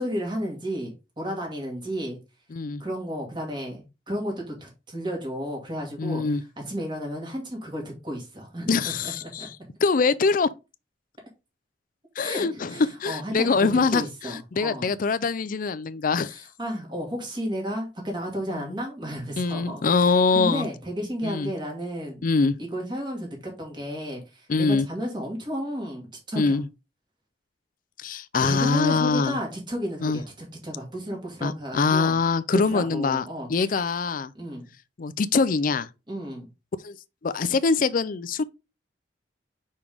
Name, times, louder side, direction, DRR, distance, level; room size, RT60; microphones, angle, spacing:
voice 1, 0.0-2.2 2.8-6.4 6.7-9.5 12.2-14.9 16.3-22.3 22.6-26.6 28.4-32.2 32.5-33.8 34.3-34.6 36.1-36.5, equal, 25° right, 2.2 m, -33 dB
voice 2, 2.5-2.8 6.0-6.4 8.7-9.5 9.8-10.5 12.2-16.4 18.5-18.6 19.4-20.7 21.2-21.5 22.2-22.6 24.5-24.9 26.4-26.7 28.0-29.4 30.0-30.2 31.4-33.2 33.5-34.3 35.0-35.9 36.8-37.0 37.2-38.4, left 4 dB, 50° left, 0.4 m, -23 dB
5.4 x 4.9 x 3.5 m
head